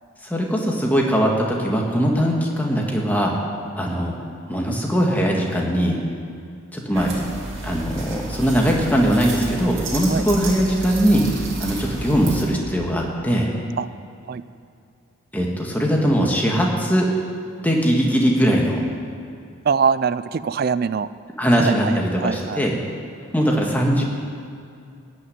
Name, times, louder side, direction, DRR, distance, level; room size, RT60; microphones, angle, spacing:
voice 1, 0.2-3.3 3.8-4.1 4.5-6.0 6.7-7.2 7.6-11.2 11.6-13.5 15.3-17.1 17.6-18.8 21.4-22.8 23.3-24.0, equal, 10° left, -1 dB, 1.6 m, -20 dB
sound 1, 6.9-12.5, right 2 dB, 60° right, 2.7 m, -31 dB
voice 2, 19.6-21.1 21.5-22.6, right 6 dB, 45° right, 16 dB, 0.3 m, -23 dB
15.0 x 6.3 x 9.5 m, 2.5 s
head